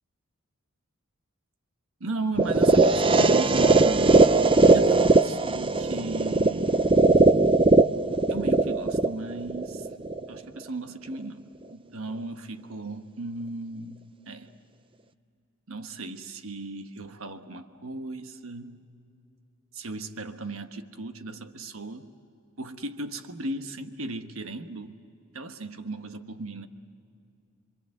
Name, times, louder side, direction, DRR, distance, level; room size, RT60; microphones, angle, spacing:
voice 1, 2.0-4.2 4.6-6.8 8.3-9.9 10.3-14.0 14.3-14.5 15.7-18.8 19.7-22.1 22.6-24.9 25.3-26.7, right 2 dB, 75° right, 8 dB, 1.3 m, -36 dB
sound 1, 2.4-10.4, right 3 dB, 25° right, 0.6 m, -20 dB
27.0 x 24.5 x 7.8 m, 2.5 s
head